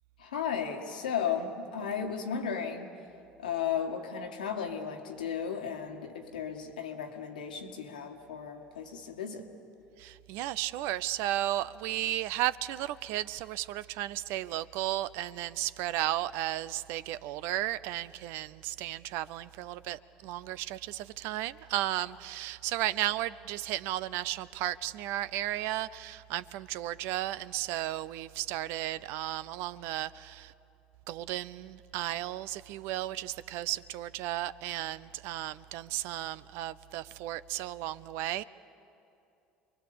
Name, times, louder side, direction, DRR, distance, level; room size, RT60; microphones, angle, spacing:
voice 1, 0.2-2.9 3.4-9.5, left 7 dB, 85° left, 3 dB, 1.9 m, -35 dB
voice 2, 10.0-30.5 31.1-38.4, right 14 dB, 65° right, 17 dB, 0.6 m, -34 dB
28.0 x 22.0 x 6.9 m, 2.7 s
hypercardioid pair, 65°, 4 cm